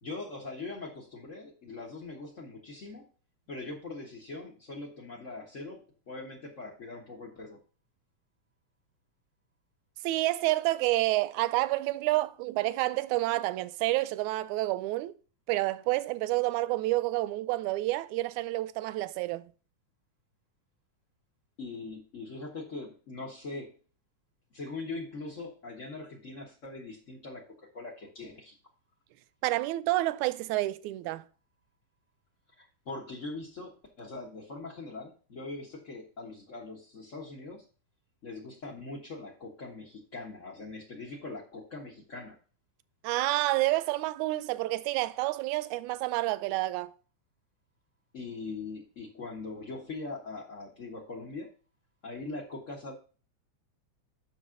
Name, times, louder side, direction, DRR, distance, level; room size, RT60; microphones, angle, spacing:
voice 1, 0.0-3.1 3.5-7.6 21.6-23.7 24.5-28.5 32.6-37.7 38.2-42.4 48.1-51.5 52.0-52.9, left 3 dB, 90° left, 0.6 m, -41 dB
voice 2, 10.0-15.1 15.5-19.5 29.4-31.2 43.0-46.9, right 18 dB, 80° right, 1.9 m, -29 dB
7.9 x 6.1 x 3.7 m
omnidirectional pair, 3.5 m